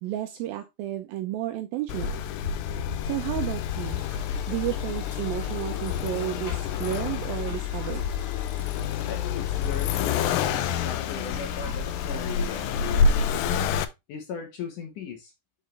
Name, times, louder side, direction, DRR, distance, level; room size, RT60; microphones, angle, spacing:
voice 1, 0.0-2.2 3.0-4.0 4.5-8.0, right 13 dB, 80° right, 2.1 m, -32 dB
Accelerating revving vroom, 1.9-13.8, left 6 dB, 85° left, 2.1 m, -28 dB
sound 1, 3.7-13.5, left 4 dB, 50° left, 0.9 m, -45 dB
voice 2, 9.1-13.5 14.1-15.3, left 7 dB, 65° left, 2.3 m, -38 dB
6.4 x 6.3 x 3.2 m
omnidirectional pair, 4.8 m